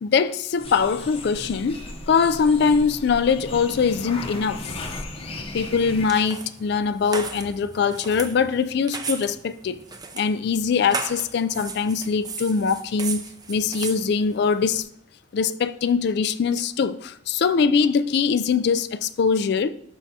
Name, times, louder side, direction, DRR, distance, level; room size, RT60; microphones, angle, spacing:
voice 1, 0.0-4.7 5.5-9.8 10.1-14.8 15.3-19.7, left 5 dB, 55° left, 0.3 m, -22 dB
sound 1, 0.6-6.1, left 2 dB, 30° left, 0.8 m, -36 dB
sound 2, 5.6-14.8, right 4 dB, 20° right, 0.5 m, -36 dB
11.5 x 4.6 x 2.8 m
head